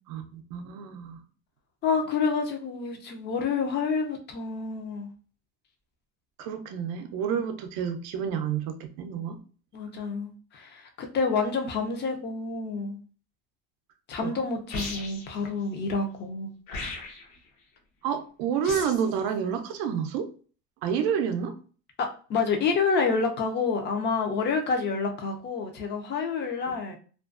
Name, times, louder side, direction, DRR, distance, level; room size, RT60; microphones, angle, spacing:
voice 1, 0.1-1.2 6.4-9.4 14.2-14.3 18.0-20.3 20.8-21.6, right 7 dB, 60° right, 0.5 m, -29 dB
voice 2, 1.8-5.1 7.3-7.4 9.7-13.0 14.1-16.5 22.0-27.0, left 4 dB, 30° left, 0.4 m, -28 dB
sound 1, 14.7-15.4 16.7-17.4 18.6-19.1, left 3 dB, 60° left, 0.8 m, -36 dB
2.4 x 2.2 x 2.3 m
supercardioid pair, 130°, 38 cm